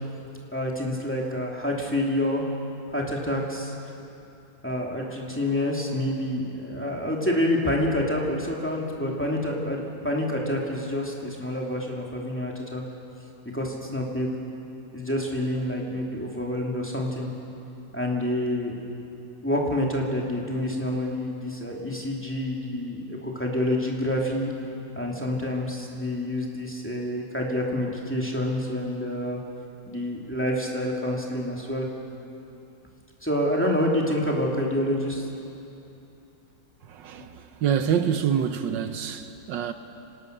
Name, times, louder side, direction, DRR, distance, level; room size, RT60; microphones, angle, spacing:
voice 1, 0.5-2.5 2.9-3.7 4.6-12.8 13.5-14.3 14.9-17.3 17.9-18.8 19.4-24.5 25.0-29.4 29.9-31.9 33.2-35.3, left 1 dB, 5° left, 2.6 m, -27 dB
voice 2, 36.8-39.7, right 8 dB, 75° right, 1.5 m, -26 dB
26.0 x 18.5 x 6.7 m
omnidirectional pair, 2.0 m